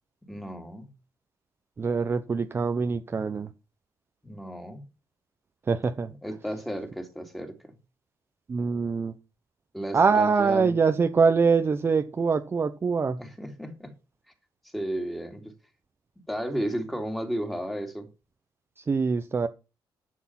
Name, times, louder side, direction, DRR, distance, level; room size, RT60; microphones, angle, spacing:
voice 1, 0.3-0.9 4.2-4.9 6.2-7.8 9.7-10.8 13.2-13.9 14.7-15.5 16.3-18.1, equal, ahead, 4 dB, 2.7 m, -33 dB
voice 2, 1.8-3.5 5.7-6.1 8.5-9.1 9.9-13.2 18.8-19.5, right 5 dB, 30° right, 8 dB, 0.7 m, -24 dB
11.0 x 6.5 x 5.9 m, 0.30 s
cardioid pair, 120°, 8 cm